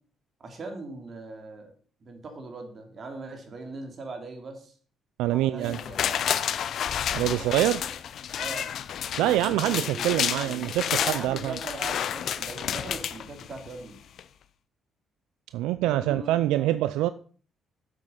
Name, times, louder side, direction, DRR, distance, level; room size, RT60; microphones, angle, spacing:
voice 1, 0.4-1.7 2.0-4.7 5.3-6.3 7.3-7.7 8.4-8.7 9.2-14.0 15.8-16.7, right 3 dB, 50° right, 4 dB, 3.0 m, -40 dB
voice 2, 5.2-5.8 7.1-7.8 9.2-11.6 15.5-17.1, right 14 dB, 90° right, 14 dB, 0.3 m, -25 dB
sound 1, 5.6-13.8 14.2-14.3, left 9 dB, 70° left, 0.6 m, -30 dB
7.8 x 7.6 x 5.7 m, 0.43 s
supercardioid pair, 65°, 0 cm